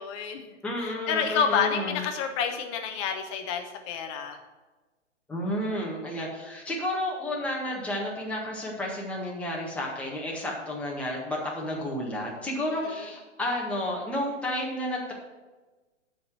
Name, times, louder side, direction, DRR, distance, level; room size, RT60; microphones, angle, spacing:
voice 1, 0.0-0.5 0.8-4.4 12.7-13.1, left 7 dB, 25° left, 5 dB, 1.1 m, -29 dB
voice 2, 0.6-2.0 5.3-15.1, left 1 dB, 5° left, -4 dB, 1.7 m, -31 dB
12.0 x 5.2 x 6.1 m, 1.2 s
figure-of-eight pair, 120°, 37 cm